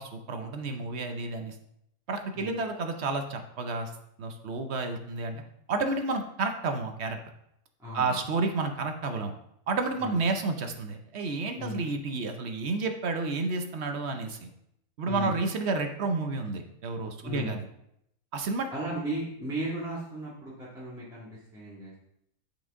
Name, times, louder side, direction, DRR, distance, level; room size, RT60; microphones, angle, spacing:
voice 1, 0.0-1.6 2.1-3.9 4.2-5.4 5.7-7.2 7.9-9.3 9.7-14.5 15.0-17.6 18.3-18.7, right 3 dB, 60° right, 5 dB, 0.8 m, -31 dB
voice 2, 7.8-8.2 10.0-10.2 11.6-11.8 15.0-15.3 17.2-17.5 18.7-22.0, right 1 dB, ahead, -9 dB, 1.8 m, -36 dB
8.1 x 5.1 x 3.6 m, 0.77 s
omnidirectional pair, 1.6 m